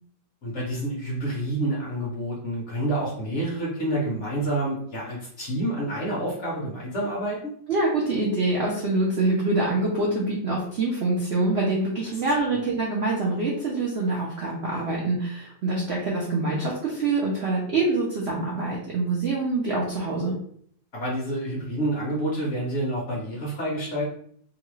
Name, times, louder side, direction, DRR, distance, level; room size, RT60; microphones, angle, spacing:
voice 1, 0.4-7.5 20.9-24.0, right 1 dB, 50° left, -4 dB, 0.9 m, -28 dB
voice 2, 7.7-20.3, right 2 dB, 75° right, -3 dB, 0.5 m, -25 dB
3.0 x 2.4 x 3.1 m, 0.62 s
omnidirectional pair, 2.0 m